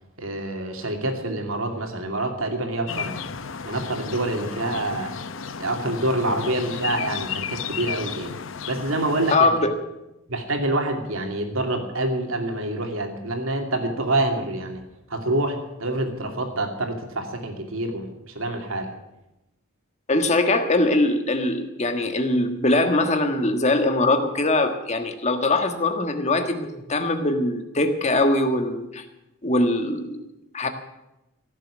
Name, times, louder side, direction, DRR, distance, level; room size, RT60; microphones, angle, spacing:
voice 1, 0.2-3.2 3.6-5.1 5.6-8.3 8.6-9.5 10.3-14.8 15.1-18.9, right 1 dB, 75° right, 4 dB, 2.6 m, -26 dB
sound 1, 2.9-9.4, left 7 dB, 65° left, 0.8 m, -33 dB
voice 2, 9.3-9.7 20.1-29.0 29.4-30.2 30.5-30.7, left 2 dB, 35° left, 6 dB, 1.6 m, -22 dB
16.5 x 7.5 x 9.9 m, 0.94 s
head